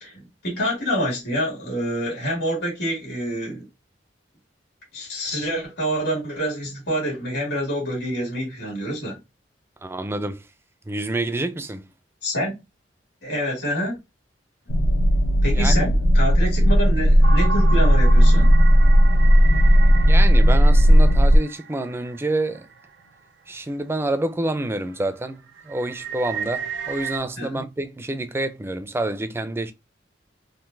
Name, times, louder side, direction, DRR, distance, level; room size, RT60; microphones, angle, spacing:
voice 1, 0.0-3.7 4.9-9.2 12.2-12.5 13.2-14.0 15.4-18.5 27.4-27.7, equal, 65° left, 1.7 m, -27 dB
voice 2, 9.8-10.4 10.9-11.9 15.5-15.9 20.1-22.7 23.5-25.4 25.6-29.7, right 2 dB, 15° right, 0.4 m, -27 dB
sound 1, 14.7-21.4, equal, 85° left, 0.6 m, -15 dB
sound 2, 17.2-23.0 23.5-23.6 24.2-24.4 24.8-27.2, right 6 dB, 80° right, 0.6 m, -34 dB
3.8 x 2.5 x 2.5 m
head